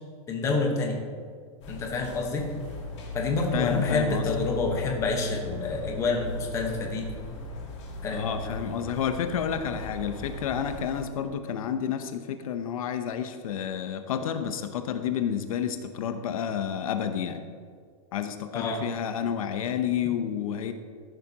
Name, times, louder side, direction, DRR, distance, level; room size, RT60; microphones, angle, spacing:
voice 1, 0.3-1.0 1.7-2.5 3.1-7.1 8.0-8.6 18.5-18.8, left 3 dB, 15° left, 1 dB, 1.2 m, -28 dB
sound 1, 1.6-11.0, left 2 dB, 50° left, 2.7 m, -37 dB
voice 2, 3.5-4.3 8.1-17.4 18.1-20.7, left 8 dB, 70° left, 8 dB, 0.8 m, -30 dB
14.0 x 11.5 x 2.9 m, 2.1 s
supercardioid pair, 175°, 19 cm